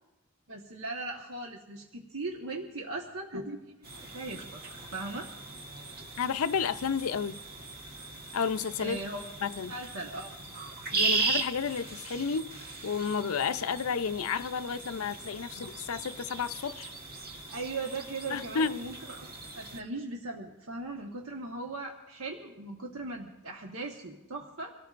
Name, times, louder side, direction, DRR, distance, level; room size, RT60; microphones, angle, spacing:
voice 1, 0.5-4.6 4.9-5.3 8.8-9.2 9.7-10.4 17.5-19.3 19.5-24.7, right 2 dB, 70° right, 1.3 m, -39 dB
sound 1, 3.8-19.8, right 3 dB, 45° right, 1.4 m, -38 dB
voice 2, 6.2-7.4 8.3-9.0 9.4-9.8 10.9-16.9 18.3-18.8, left 6 dB, 75° left, 0.5 m, -31 dB
26.0 x 17.0 x 2.5 m
head